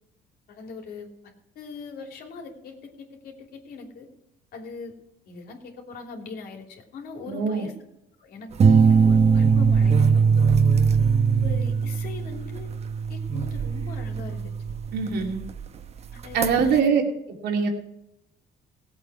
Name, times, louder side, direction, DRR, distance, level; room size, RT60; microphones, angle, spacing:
voice 1, 0.5-4.1 4.5-4.9 5.3-7.7 8.2-8.5 8.8-10.7 11.4-12.7 13.1-14.5 16.1-17.0, left 4 dB, 65° left, 2 dB, 3.2 m, -41 dB
voice 2, 7.3-7.7 14.9-15.4 16.3-17.0 17.4-17.7, right 6 dB, 75° right, 1 dB, 3.0 m, -23 dB
sound 1, 8.6-15.6 16.1-16.8, right 5 dB, 40° right, 1.0 m, -21 dB
17.5 x 8.3 x 4.8 m, 0.83 s
cardioid pair, 110°, 17 cm